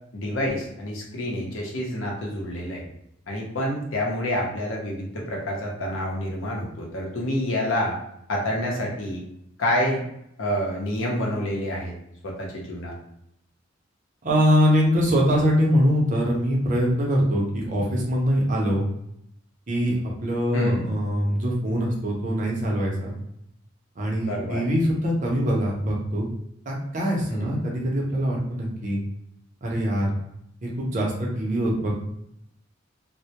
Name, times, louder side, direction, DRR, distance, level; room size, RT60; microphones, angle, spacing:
voice 1, 0.1-2.8 3.3-8.0 8.3-9.2 9.6-10.0 10.4-11.9 12.2-12.9 20.5-20.9 24.2-24.6 27.3-27.6, left 1 dB, 85° left, -2 dB, 0.7 m, -28 dB
voice 2, 14.2-18.8 19.7-23.1 24.0-26.3 26.7-29.0 29.6-30.1 30.6-31.9, equal, 40° right, -2 dB, 0.6 m, -23 dB
2.1 x 2.0 x 2.8 m, 0.76 s
head